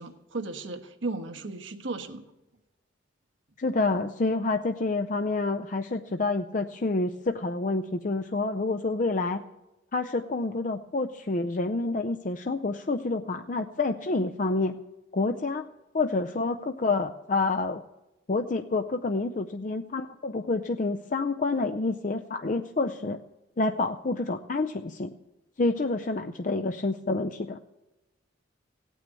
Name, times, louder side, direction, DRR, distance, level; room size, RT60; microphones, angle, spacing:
voice 1, 0.0-2.2, right 3 dB, 75° right, 7 dB, 1.3 m, -35 dB
voice 2, 3.6-9.4 9.9-14.8 15.1-15.7 15.9-17.8 18.3-23.2 23.6-25.1 25.6-27.6, left 3 dB, 40° left, 6 dB, 0.5 m, -28 dB
17.0 x 9.2 x 8.3 m, 1.0 s
head